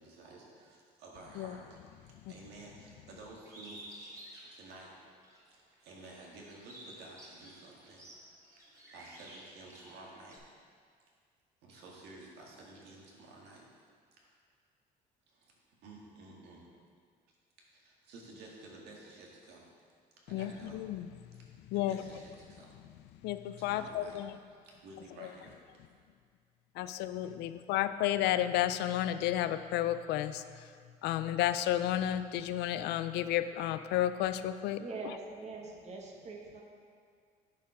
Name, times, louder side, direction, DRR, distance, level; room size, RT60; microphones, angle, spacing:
voice 1, 0.0-4.1 4.5-4.9 5.5-8.0 8.9-10.4 11.6-13.7 14.2-14.3 15.3-16.7 17.6-19.7 20.2-20.8 21.7-22.8 23.6-24.2 24.6-25.6, right 2 dB, 75° right, -2 dB, 1.9 m, -52 dB
Bird, 3.5-5.4 5.9-10.4, right 1 dB, 20° right, 2.2 m, -52 dB
voice 2, 20.3-21.4 21.7-22.0 23.2-24.4 25.2-25.3 26.7-30.7 31.0-35.2, left 12 dB, 85° left, 12 dB, 0.4 m, -32 dB
voice 3, 34.8-36.6, right 3 dB, 40° right, 0 dB, 1.5 m, -43 dB
10.5 x 4.6 x 5.0 m, 2.1 s
cardioid pair, 110°, 17 cm